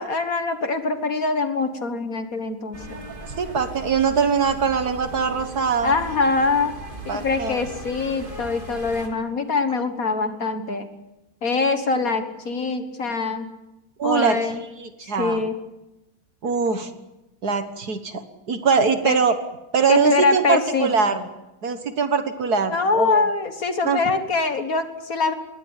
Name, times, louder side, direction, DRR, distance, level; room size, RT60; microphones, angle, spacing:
voice 1, 0.0-3.0 5.8-6.7 7.1-10.9 11.4-13.5 14.0-14.6 15.2-15.6 19.0-19.2 19.9-21.1 22.7-25.3, left 4 dB, 45° left, 8 dB, 1.8 m, -23 dB
sound 1, 2.7-9.1, right 2 dB, 25° right, 2.7 m, -38 dB
voice 2, 3.4-5.9 7.1-7.6 14.0-14.4 14.8-15.4 16.4-16.9 17.4-18.2 18.5-19.4 19.7-21.2 21.6-23.2 23.8-24.0, right 5 dB, 50° right, 9 dB, 1.8 m, -22 dB
21.0 x 18.5 x 9.7 m, 0.99 s
omnidirectional pair, 2.3 m